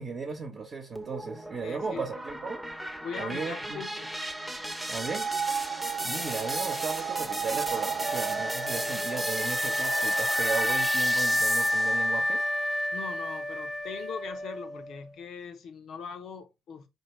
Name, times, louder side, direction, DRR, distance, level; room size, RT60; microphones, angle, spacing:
voice 1, 0.0-2.7 3.2-3.8 4.9-5.3 6.0-12.5, right 4 dB, 40° right, 0.9 m, -36 dB
sound 1, 1.0-12.1, right 1 dB, 5° right, 0.8 m, -35 dB
voice 2, 1.6-2.0 3.0-4.1 12.9-16.9, left 6 dB, 70° left, 0.8 m, -40 dB
sound 2, 4.9-12.6, right 7 dB, 80° right, 0.8 m, -35 dB
Wind instrument woodwind instrument, 8.0-15.0, left 1 dB, 20° left, 0.4 m, -29 dB
4.4 x 2.8 x 3.1 m
cardioid pair, 90°, 0 cm